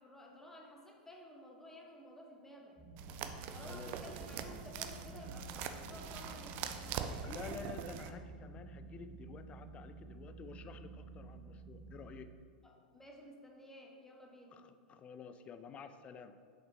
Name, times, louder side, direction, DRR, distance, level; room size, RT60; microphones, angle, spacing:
voice 1, 0.0-2.8 3.5-7.1 12.6-14.6, left 1 dB, 10° left, 0 dB, 1.1 m, -54 dB
sound 1, 2.8-12.1, right 1 dB, 20° right, 1.8 m, -52 dB
sound 2, 3.0-8.1, right 8 dB, 45° right, 0.4 m, -43 dB
voice 2, 3.5-4.2 7.2-12.3 14.5-16.4, left 6 dB, 25° left, 10 dB, 0.4 m, -50 dB
6.5 x 5.4 x 3.8 m, 2.1 s
figure-of-eight pair, 95°, 5 cm